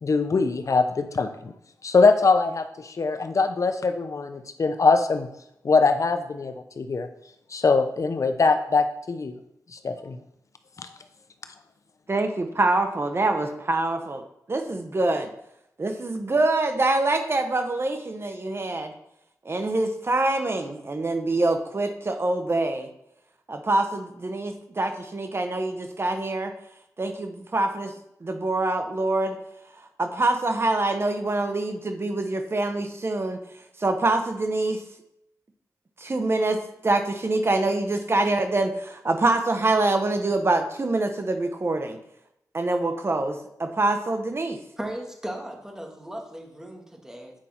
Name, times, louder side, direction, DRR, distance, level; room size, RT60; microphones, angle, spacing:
voice 1, 0.0-1.3 1.8-5.3 5.6-7.1 7.5-9.3 9.7-10.2 10.8-10.9, left 4 dB, 55° left, 9 dB, 0.6 m, -22 dB
voice 2, 12.1-14.2 14.5-15.3 15.8-18.9 19.4-22.9 23.5-26.5 27.0-27.9 28.2-29.4 30.0-33.4 33.8-34.8 36.0-36.6 36.8-42.0 42.5-44.6, right 2 dB, 40° right, 6 dB, 0.9 m, -25 dB
voice 3, 44.8-47.4, right 1 dB, 10° right, 1 dB, 1.9 m, -37 dB
8.9 x 5.4 x 4.4 m, 0.80 s
cardioid pair, 75°, 7 cm